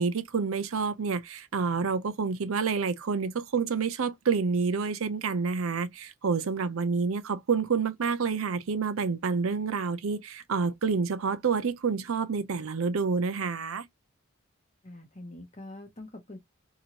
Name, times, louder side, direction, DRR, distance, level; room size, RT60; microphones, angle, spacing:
voice 1, 0.0-13.9, right 5 dB, 75° right, 0.5 m, -28 dB
voice 2, 14.8-16.4, left 1 dB, 30° left, 0.8 m, -44 dB
2.9 x 2.4 x 2.8 m
head